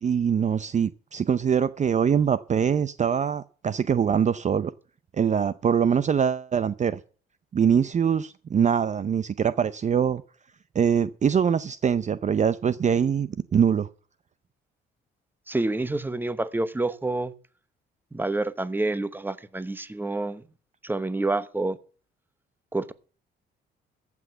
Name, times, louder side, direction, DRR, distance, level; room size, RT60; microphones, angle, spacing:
voice 1, 0.0-4.7 5.2-7.0 7.5-10.2 10.7-13.9, right 7 dB, 35° right, 0.6 m, -23 dB
voice 2, 15.5-17.3 18.1-20.4 20.8-21.8 22.7-22.9, right 2 dB, 10° right, 0.9 m, -28 dB
14.5 x 6.1 x 8.0 m
cardioid pair, 90°, 20 cm